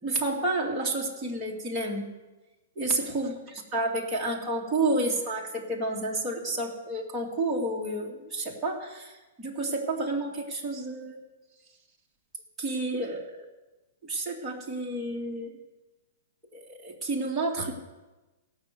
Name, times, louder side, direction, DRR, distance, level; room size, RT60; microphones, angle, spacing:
voice 1, 0.0-2.1 2.8-3.3 3.7-11.2 12.6-13.4 14.0-15.5 16.5-17.7, right 2 dB, 15° right, -3 dB, 2.2 m, -30 dB
16.0 x 6.4 x 8.1 m, 1.1 s
hypercardioid pair, 160°, 0 cm